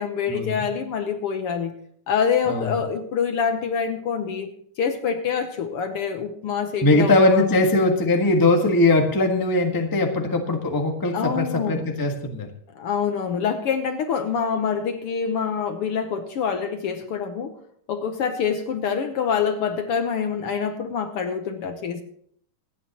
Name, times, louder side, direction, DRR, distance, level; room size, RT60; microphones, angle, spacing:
voice 1, 0.0-1.7 2.1-4.5 4.8-7.5 11.1-11.9 12.7-17.6 17.9-22.0, left 6 dB, 65° left, 7 dB, 1.5 m, -26 dB
voice 2, 2.5-2.8 6.8-12.5, left 2 dB, 20° left, 2 dB, 0.5 m, -20 dB
26.5 x 9.2 x 3.0 m, 0.65 s
omnidirectional pair, 3.3 m